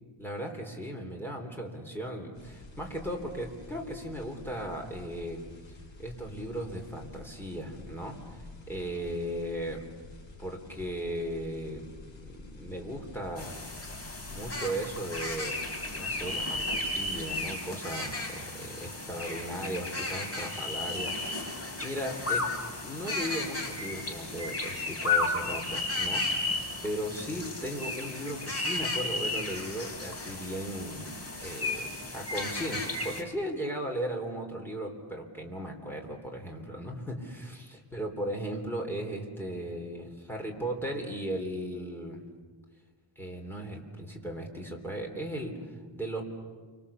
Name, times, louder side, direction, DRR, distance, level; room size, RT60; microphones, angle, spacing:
voice 1, 0.2-5.4 6.0-8.2 8.7-9.8 10.4-11.8 12.2-13.6 14.3-15.6 16.0-22.5 22.8-31.1 31.4-42.2 43.2-46.2, equal, 5° left, 1 dB, 3.3 m, -37 dB
sound 1, 2.3-17.5, left 2 dB, 65° left, 4.8 m, -49 dB
sound 2, 13.4-33.2, left 2 dB, 30° left, 3.0 m, -34 dB
29.5 x 25.0 x 7.1 m, 1.5 s
wide cardioid pair, 175°, 50 cm